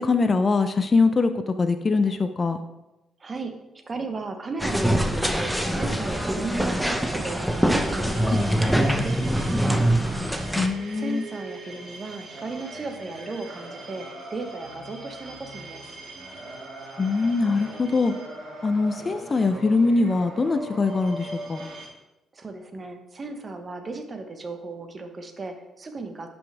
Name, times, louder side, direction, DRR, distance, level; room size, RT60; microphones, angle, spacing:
voice 1, 0.0-2.6 10.5-11.2 17.0-18.1 18.6-21.6, left 3 dB, 35° left, 8 dB, 0.5 m, -22 dB
voice 2, 3.2-3.5 3.8-9.8 10.9-16.0 22.3-26.3, right 3 dB, 35° right, 6 dB, 1.0 m, -35 dB
sound 1, 4.6-10.7, equal, ahead, 0.7 m, -24 dB
sound 2, 5.3-21.9, right 2 dB, 55° right, 2.2 m, -40 dB
11.0 x 5.3 x 3.4 m, 0.99 s
cardioid pair, 90°, 0 cm